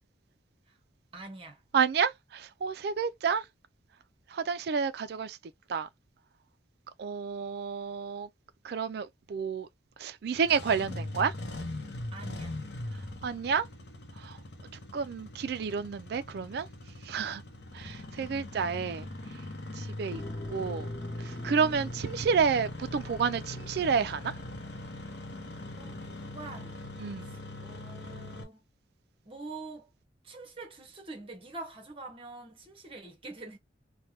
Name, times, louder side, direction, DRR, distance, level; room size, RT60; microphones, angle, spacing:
voice 1, 1.1-1.6 12.1-12.6 25.8-26.8 27.2-28.6 29.2-29.9 30.2-33.6, right 3 dB, 30° right, 0.9 m, -45 dB
voice 2, 1.7-3.4 4.3-5.4 5.7-5.9 7.0-8.3 8.6-9.7 10.0-11.3 13.2-13.7 14.2-14.3 14.9-16.7 17.1-17.4 17.7-19.1 19.8-20.2 20.5-20.9 21.4-24.3 27.0-27.3, right 6 dB, 55° right, 0.3 m, -30 dB
Engine starting, 10.3-28.4, left 1 dB, 60° left, 0.7 m, -41 dB
sound 1, 20.1-27.6, left 2 dB, 20° left, 0.5 m, -48 dB
3.3 x 2.2 x 2.6 m
head